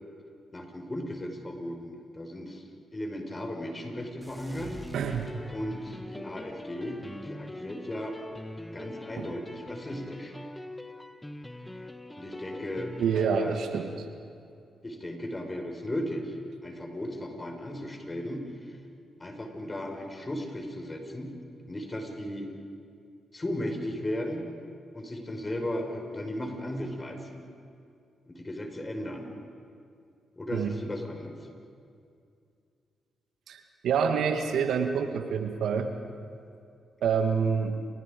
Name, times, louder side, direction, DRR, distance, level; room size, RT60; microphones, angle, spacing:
voice 1, 0.5-4.8 5.5-8.2 8.7-10.4 12.2-13.5 14.8-16.4 16.6-18.8 19.2-21.3 21.7-22.5 23.3-24.4 24.9-27.4 28.3-29.3 30.4-31.4, left 1 dB, 30° left, 4 dB, 5.3 m, -36 dB
sound 1, 4.2-6.0, right 1 dB, 15° right, 4.9 m, -47 dB
sound 2, 4.5-13.3, left 1 dB, 10° left, 1.6 m, -43 dB
voice 2, 4.9-5.3 9.2-9.3 13.0-13.9 30.5-30.7 33.5-35.9 37.0-37.8, right 6 dB, 70° right, 6 dB, 1.6 m, -27 dB
29.5 x 25.5 x 5.2 m, 2.4 s
hypercardioid pair, 45°, 0 cm